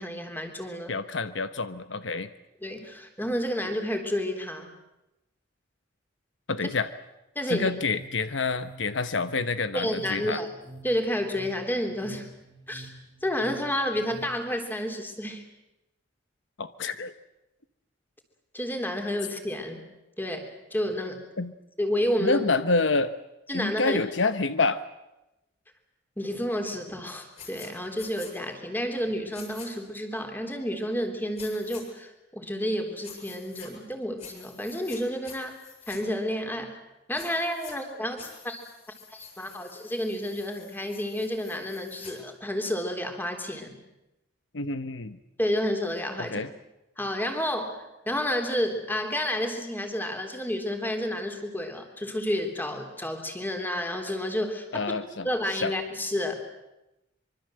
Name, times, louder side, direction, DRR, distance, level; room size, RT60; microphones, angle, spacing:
voice 1, 0.0-1.0 2.6-4.7 7.4-7.7 9.7-10.5 10.8-12.3 12.7-12.9 13.2-15.4 18.5-19.8 20.2-21.2 21.8-22.4 23.5-24.0 26.2-35.6 35.9-36.8 37.1-38.6 39.1-43.8 45.4-46.4 47.0-54.9 55.2-56.3, equal, 10° left, 5 dB, 3.5 m, -30 dB
voice 2, 0.9-2.3 6.5-6.9 7.5-10.4 16.6-17.1 21.4-21.5 22.2-23.1 23.5-24.8 44.5-45.2 46.2-46.5 54.7-55.3 55.6-55.7, left 3 dB, 70° left, 12 dB, 1.0 m, -27 dB
sound 1, 7.5-14.3, right 2 dB, 20° right, 3.0 m, -48 dB
sound 2, 27.4-27.7 28.0-28.3 29.3-29.7 31.4-31.8 33.0-33.7 34.2-35.0 35.2-36.0 37.2-37.7 38.2-42.1, left 6 dB, 35° left, 7.7 m, -47 dB
25.0 x 24.5 x 7.8 m, 0.93 s
head